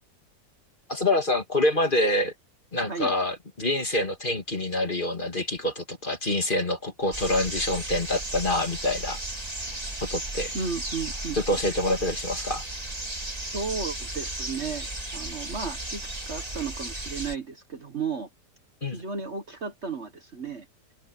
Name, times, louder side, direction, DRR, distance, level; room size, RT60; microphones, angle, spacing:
voice 1, 0.9-2.3 2.7-9.2 10.0-10.5 11.3-12.6 18.8-19.0, left 1 dB, 30° left, 2.7 m, -26 dB
sound 1, 7.1-17.4, right 1 dB, 20° right, 3.2 m, -34 dB
voice 2, 10.5-11.6 13.4-18.3 18.8-20.7, right 5 dB, 45° right, 1.6 m, -34 dB
omnidirectional pair, 1.8 m